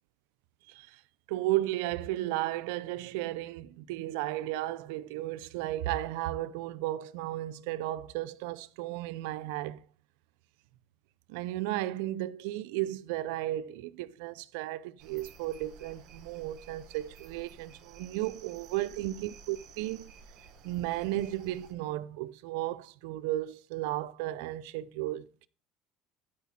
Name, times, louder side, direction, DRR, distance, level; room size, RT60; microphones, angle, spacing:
voice 1, 0.7-1.0 1.3-9.8 11.3-20.1 20.6-25.5, right 15 dB, 85° right, 0.5 m, -34 dB
sound 1, 15.0-21.7, right 6 dB, 65° right, 1.2 m, -53 dB
12.0 x 5.0 x 4.2 m
supercardioid pair, 105°, 0 cm